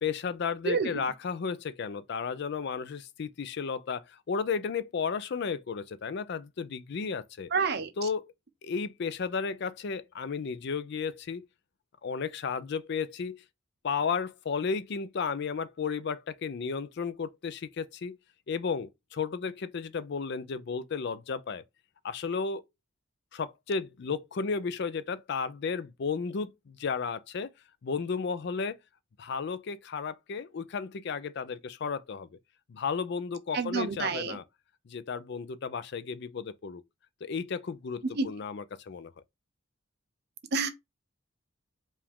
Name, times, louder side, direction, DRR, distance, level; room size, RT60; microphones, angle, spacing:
voice 1, 0.0-7.5 8.0-8.3 8.6-11.4 12.0-13.4 13.8-18.2 18.5-21.6 22.0-22.6 23.3-27.5 27.8-28.8 29.2-32.3 32.7-34.4 34.9-36.8 37.2-39.1, left 5 dB, 55° left, 0.4 m, -33 dB
voice 2, 7.5-7.9 33.5-34.4 38.2-38.3 40.5-40.7, right 4 dB, 50° right, 0.7 m, -28 dB
4.8 x 2.5 x 3.6 m
head